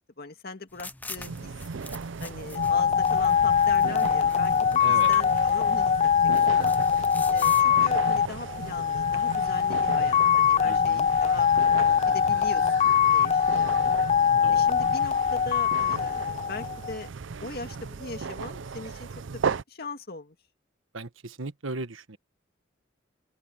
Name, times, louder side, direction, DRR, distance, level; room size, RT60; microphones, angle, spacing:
voice 1, 0.0-1.5 2.2-5.9 6.4-6.7 7.3-11.5 11.8-14.0 14.5-17.1 17.4-19.1 19.3-20.4, left 3 dB, 55° left, 2.0 m, -40 dB
sound 1, 0.7-7.6, left 3 dB, 10° left, 0.7 m, -46 dB
sound 2, 1.2-19.6, right 5 dB, 70° right, 0.5 m, -36 dB
sound 3, 2.5-17.0, left 8 dB, 35° left, 0.3 m, -23 dB
voice 2, 4.8-5.1 10.6-11.1 14.4-14.6 20.9-22.2, right 2 dB, 90° right, 1.5 m, -37 dB
open air
head